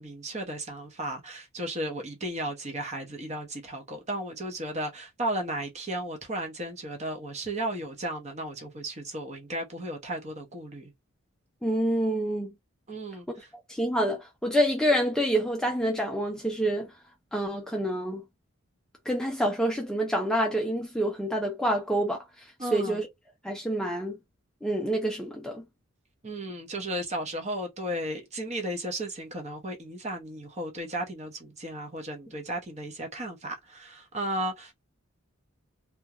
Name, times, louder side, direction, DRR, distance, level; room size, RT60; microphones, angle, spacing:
voice 1, 0.0-10.9 12.9-13.5 22.6-23.0 26.2-34.7, right 1 dB, 30° right, 0.7 m, -34 dB
voice 2, 11.6-12.5 13.7-16.9 17.3-18.2 19.1-23.1 23.4-24.2 24.6-25.6, equal, 5° left, 0.4 m, -27 dB
2.3 x 2.2 x 2.8 m
head